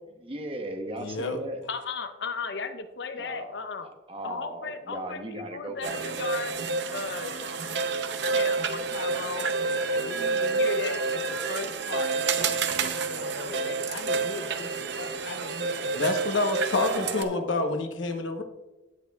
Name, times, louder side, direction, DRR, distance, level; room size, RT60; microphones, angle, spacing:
voice 1, 0.2-1.6 3.2-3.6 4.1-6.0 16.9-17.7, right 1 dB, 30° right, 5 dB, 0.9 m, -37 dB
voice 2, 1.0-1.4 15.9-18.4, left 2 dB, 90° left, 6 dB, 1.0 m, -28 dB
voice 3, 1.7-3.9 4.2-6.6 6.9-7.4 8.3-9.5 9.9-16.1, left 4 dB, 65° left, 9 dB, 0.7 m, -37 dB
sound 1, 5.8-17.2, right 4 dB, 65° right, 0.7 m, -29 dB
16.0 x 6.5 x 2.3 m, 1.1 s
head